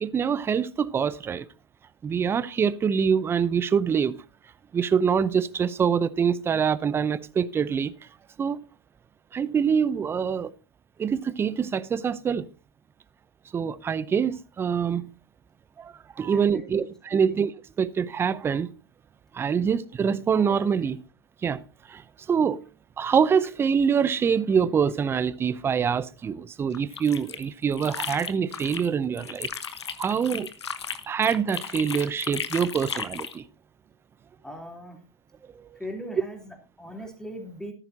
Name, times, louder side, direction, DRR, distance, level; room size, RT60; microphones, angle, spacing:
voice 1, 0.0-1.5 2.0-4.2 4.7-7.9 8.4-8.6 9.3-10.5 11.0-12.4 13.5-15.0 15.8-17.5 17.8-18.7 19.3-21.0 21.4-21.6 21.9-22.0 22.3-22.6 23.0-29.5 30.0-30.5 31.1-33.4 35.6-35.7, right 7 dB, 15° right, 0.6 m, -25 dB
voice 2, 16.2-17.4 19.6-19.7 34.4-35.0 35.8-37.7, equal, 5° left, 3.4 m, -40 dB
sound 1, 26.7-28.9 29.2-33.4, left 7 dB, 90° left, 1.1 m, -35 dB
14.0 x 11.0 x 2.8 m
hypercardioid pair, 115°, 14 cm